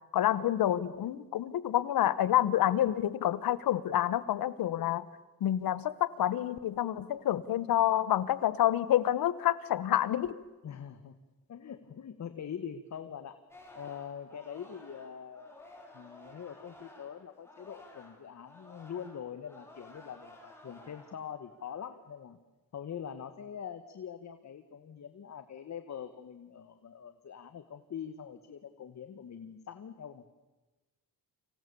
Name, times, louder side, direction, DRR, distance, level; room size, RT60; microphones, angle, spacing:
voice 1, 0.1-5.0 5.4-10.4, left 12 dB, 85° left, 17 dB, 1.3 m, -28 dB
voice 2, 10.6-11.2 11.5-13.4 13.7-15.6 15.9-22.4 22.7-30.3, left 8 dB, 50° left, 9 dB, 1.5 m, -43 dB
Singing, 13.5-18.2 18.4-21.2 21.6-22.0, left 1 dB, 5° left, 6.0 m, -54 dB
30.0 x 26.0 x 7.0 m, 1.1 s
cardioid pair, 120°, 34 cm